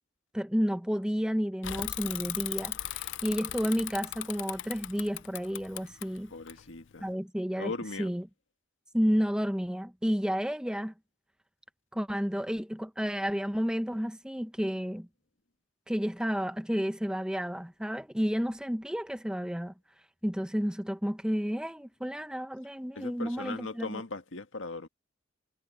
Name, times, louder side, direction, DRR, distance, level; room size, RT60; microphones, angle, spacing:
voice 1, 0.3-6.3 7.0-7.7 8.0-8.3 8.9-10.9 11.9-15.1 15.9-19.7 20.2-24.0, equal, 5° right, 0.7 m, -31 dB
Bicycle / Mechanisms, 1.6-7.1, left 14 dB, 70° left, 0.5 m, -38 dB
voice 2, 6.3-7.1 7.6-8.1 22.9-24.9, left 3 dB, 90° left, 1.8 m, -39 dB
head